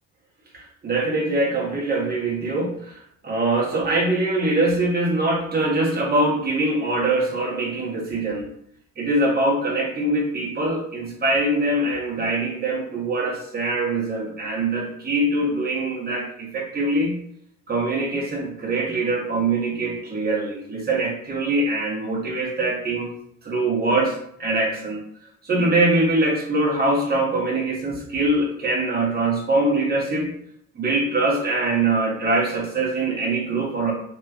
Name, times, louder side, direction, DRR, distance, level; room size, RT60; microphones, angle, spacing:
voice 1, 0.5-3.0 3.2-8.5 9.0-17.2 17.7-23.1 23.4-25.0 25.4-30.3 30.7-33.9, right 2 dB, 30° right, -2 dB, 1.2 m, -23 dB
3.1 x 3.0 x 2.3 m, 0.69 s
cardioid pair, 90°, 30 cm